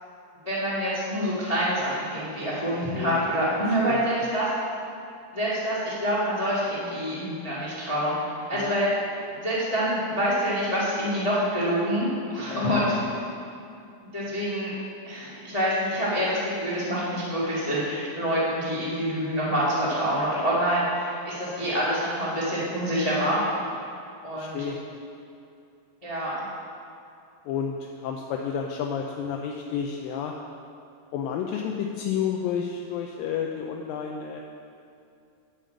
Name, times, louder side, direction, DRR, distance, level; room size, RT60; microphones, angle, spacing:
voice 1, 0.4-4.5 5.3-8.1 8.5-8.9 9.3-13.2 14.1-14.7 15.0-23.4 24.2-24.6 26.0-26.3, equal, 50° left, -9 dB, 0.4 m, -26 dB
voice 2, 12.4-12.9 24.4-25.0 27.5-30.4 31.1-34.4, left 7 dB, 85° left, 1 dB, 2.0 m, -31 dB
10.0 x 5.0 x 7.6 m, 2.5 s
omnidirectional pair, 4.6 m